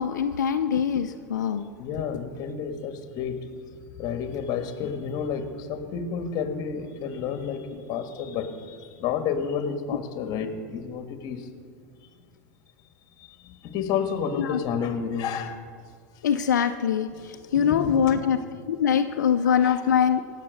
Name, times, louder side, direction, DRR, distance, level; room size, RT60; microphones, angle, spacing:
voice 1, 0.0-1.7 14.4-14.6 16.2-18.4 18.7-20.2, left 8 dB, 90° left, 7 dB, 0.5 m, -23 dB
voice 2, 1.8-3.5 4.0-11.5 13.2-15.6 17.1-17.3 17.5-18.2 19.4-19.8, left 6 dB, 45° left, 8 dB, 1.6 m, -31 dB
18.0 x 7.5 x 6.4 m, 2.1 s
hypercardioid pair, 105°, 9 cm